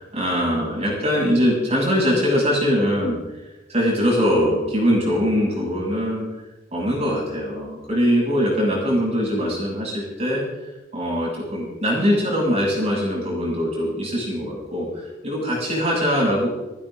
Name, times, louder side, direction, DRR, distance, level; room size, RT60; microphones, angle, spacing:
voice 1, 0.2-3.2 3.7-6.2 6.7-10.4 10.9-16.5, equal, 35° right, -4 dB, 7.7 m, -22 dB
28.0 x 12.0 x 3.9 m, 1.1 s
head